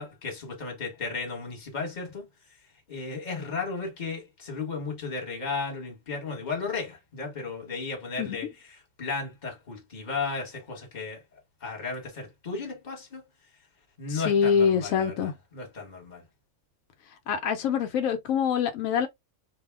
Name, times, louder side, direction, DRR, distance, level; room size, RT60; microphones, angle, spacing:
voice 1, 0.0-2.3 2.9-8.5 9.0-11.2 11.6-13.3 14.0-16.2, left 4 dB, 35° left, 1.3 m, -34 dB
voice 2, 14.1-15.3 17.3-19.1, left 7 dB, 90° left, 1.0 m, -25 dB
2.6 x 2.2 x 3.3 m
omnidirectional pair, 1.4 m